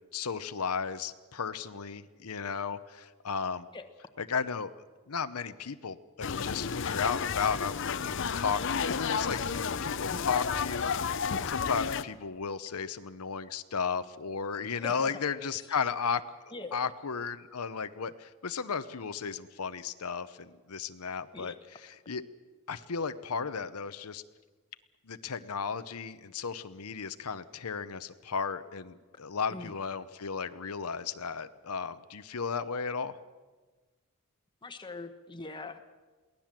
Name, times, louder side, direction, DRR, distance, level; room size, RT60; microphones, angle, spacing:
voice 1, 0.1-3.7 4.2-4.7 5.1-10.8 11.5-16.2 16.7-21.5 22.1-22.2 22.7-24.2 25.1-33.1, left 6 dB, 90° left, 12 dB, 0.8 m, -34 dB
sound 1, 6.2-12.0, left 6 dB, 55° left, 0.6 m, -32 dB
voice 2, 14.8-15.2 15.5-15.8 16.5-16.8 21.3-21.6 29.5-29.7 34.6-35.9, left 3 dB, 20° left, 7 dB, 1.2 m, -42 dB
22.5 x 17.0 x 7.5 m, 1.3 s
head